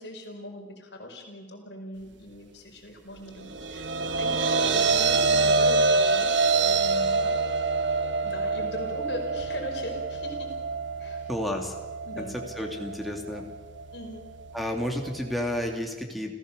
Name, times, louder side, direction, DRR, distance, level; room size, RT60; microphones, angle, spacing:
voice 1, 0.0-7.4 8.2-10.5 11.0-11.3 12.0-12.4 13.9-14.3, left 1 dB, 70° left, 2 dB, 4.8 m, -40 dB
sound 1, 3.4-15.7, right 3 dB, 90° right, 1.3 m, -27 dB
voice 2, 11.3-11.7 12.2-13.4 14.5-16.4, left 1 dB, ahead, 1 dB, 2.6 m, -31 dB
29.0 x 15.5 x 6.7 m, 1.2 s
head